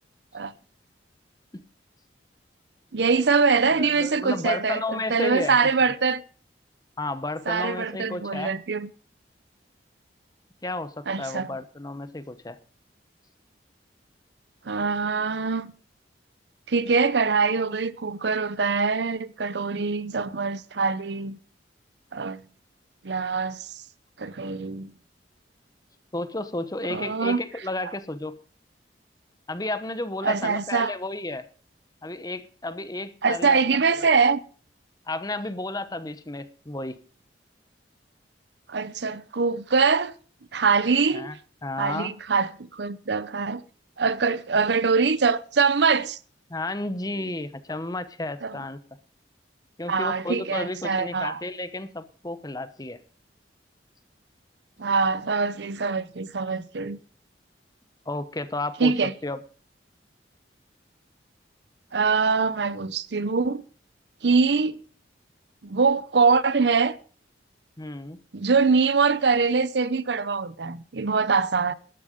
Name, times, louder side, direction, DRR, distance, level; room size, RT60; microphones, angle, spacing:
voice 1, 2.9-4.8 5.1-6.2 7.5-8.9 11.1-11.5 14.7-15.7 16.7-21.4 22.1-22.4 23.0-23.7 24.2-24.9 26.9-27.4 30.2-30.9 33.2-34.4 38.7-40.1 40.5-41.3 41.8-43.6 44.0-46.2 48.4-48.6 49.9-51.4 54.8-57.0 58.8-59.1 61.9-63.6 64.2-64.8 65.6-67.0 68.3-71.7, right 4 dB, 70° right, 0.7 m, -23 dB
voice 2, 3.8-5.6 7.0-8.5 10.6-12.6 26.1-28.4 29.5-31.4 32.0-33.6 33.9-34.0 35.1-37.0 41.1-41.3 41.6-42.1 46.5-48.8 49.8-53.0 58.1-58.9 59.2-59.4 67.8-68.2, left 2 dB, 20° left, 0.9 m, -32 dB
12.5 x 10.5 x 5.1 m
head